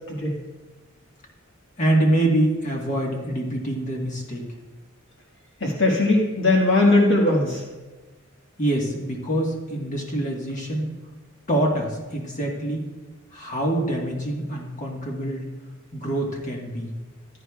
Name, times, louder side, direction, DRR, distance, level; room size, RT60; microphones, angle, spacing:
voice 1, 0.1-0.4 5.6-7.6, left 2 dB, 60° left, -1 dB, 1.6 m, -19 dB
voice 2, 1.8-4.4 8.6-10.9 11.5-12.8 13.3-15.5 15.9-16.9, right 1 dB, 35° left, -1 dB, 1.4 m, -25 dB
15.5 x 9.9 x 2.3 m, 1.2 s
head